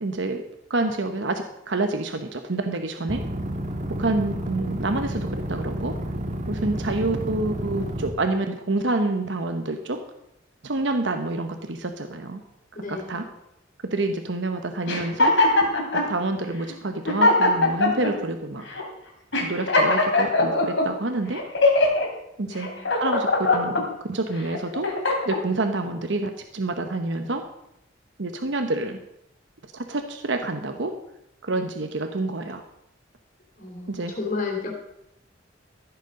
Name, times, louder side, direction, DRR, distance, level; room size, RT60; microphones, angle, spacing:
voice 1, 0.0-0.4 0.7-3.2 4.0-6.0 6.5-10.0 10.6-12.4 12.9-13.3 13.9-15.4 15.9-18.6 19.4-21.4 22.4-22.7 23.0-24.9 25.2-27.5 28.2-29.0 29.7-31.0 31.4-32.6 33.9-34.1, right 2 dB, 70° right, 6 dB, 1.0 m, -27 dB
sound 1, 3.1-8.1, equal, 40° right, 1.4 m, -30 dB
voice 2, 12.7-13.1 22.4-22.9 33.6-34.7, left 4 dB, 45° left, 1 dB, 3.3 m, -32 dB
sound 2, 14.9-16.1 16.7-16.8 17.1-18.1 18.7-18.9 19.3-20.9 21.3-22.1 22.6-23.8 24.4-25.4, left 2 dB, 80° left, 2.9 m, -21 dB
14.0 x 8.2 x 5.3 m, 0.83 s
head